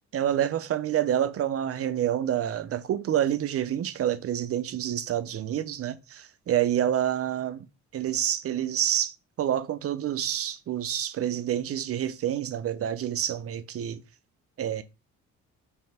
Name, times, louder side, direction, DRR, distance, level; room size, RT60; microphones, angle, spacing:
voice 1, 0.1-7.6 7.9-14.0 14.6-14.8, right 10 dB, 50° right, 0.5 m, -28 dB
3.5 x 3.3 x 4.2 m
cardioid pair, 90°, 30 cm